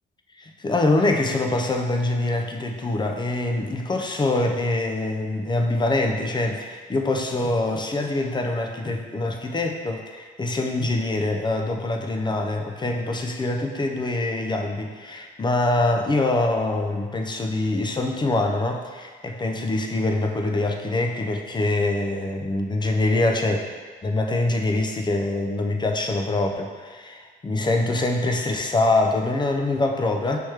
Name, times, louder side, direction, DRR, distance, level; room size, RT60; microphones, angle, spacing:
voice 1, 0.4-23.7 24.0-30.4, left 2 dB, 20° left, 3 dB, 0.5 m, -24 dB
4.8 x 3.0 x 3.3 m, 1.5 s
cardioid pair, 90°, 20 cm